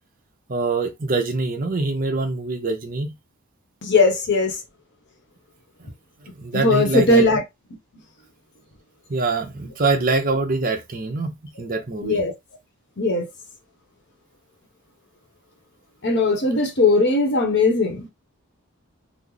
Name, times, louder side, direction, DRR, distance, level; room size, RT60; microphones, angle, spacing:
voice 1, 0.5-3.1 5.8-5.9 6.4-7.2 9.1-12.3, right 3 dB, 40° right, 0.7 m, -24 dB
voice 2, 3.8-4.5 6.5-7.4 12.0-12.3 13.0-13.3 16.0-18.1, left 2 dB, 50° left, 0.9 m, -19 dB
3.1 x 2.0 x 3.8 m
head